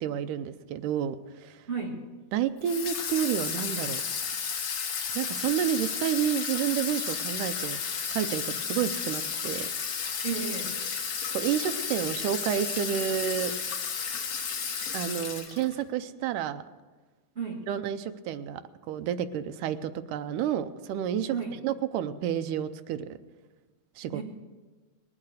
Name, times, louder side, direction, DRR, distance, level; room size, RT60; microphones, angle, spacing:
voice 1, 0.0-1.2 1.4-1.6 2.3-4.0 5.2-7.8 8.1-9.7 11.3-13.5 14.9-16.6 17.7-18.6 18.9-21.4 21.6-23.1 24.0-24.2, right 9 dB, 85° right, 10 dB, 2.2 m, -30 dB
voice 2, 1.7-2.0 10.2-10.8 17.3-17.7 21.3-21.6 24.1-24.2, right 5 dB, 25° right, -4 dB, 1.6 m, -33 dB
Water tap faucet / Sink (filling or washing), 2.6-15.8, left 6 dB, 60° left, 2.1 m, -33 dB
19.5 x 8.7 x 6.5 m, 1.3 s
omnidirectional pair, 3.7 m